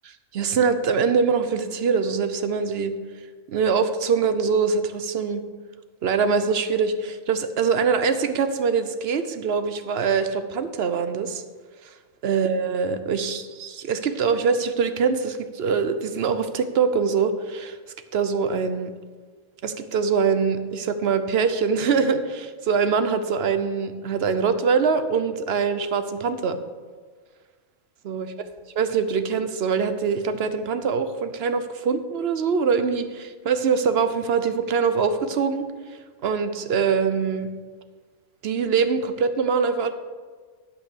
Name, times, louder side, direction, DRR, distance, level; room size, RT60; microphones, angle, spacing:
voice 1, 0.3-2.9 3.5-5.4 6.0-11.4 12.2-17.8 18.1-18.9 19.6-26.6 28.0-28.3 28.8-35.7 36.2-37.5 38.4-39.9, right 5 dB, 60° right, 10 dB, 0.9 m, -23 dB
11.5 x 5.3 x 6.7 m, 1.5 s
omnidirectional pair, 1.3 m